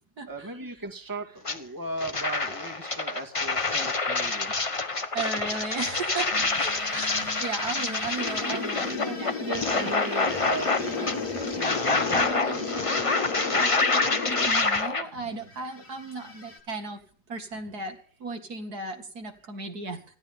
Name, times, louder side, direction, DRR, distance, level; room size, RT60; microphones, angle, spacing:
voice 1, 0.3-4.6 8.5-13.7, right 2 dB, 10° right, 3 dB, 2.0 m, -38 dB
sound 1, 1.4-1.6 2.0-15.0, left 3 dB, 25° left, 1.0 m, -27 dB
voice 2, 5.1-9.3 14.4-17.0 17.3-20.0, right 3 dB, 70° right, 4 dB, 2.7 m, -35 dB
sound 2, 6.3-14.1 15.2-16.6, left 3 dB, 55° left, 3.1 m, -43 dB
sound 3, 8.2-14.5, left 4 dB, 70° left, 2.1 m, -33 dB
20.0 x 15.0 x 3.7 m, 0.42 s
omnidirectional pair, 1.7 m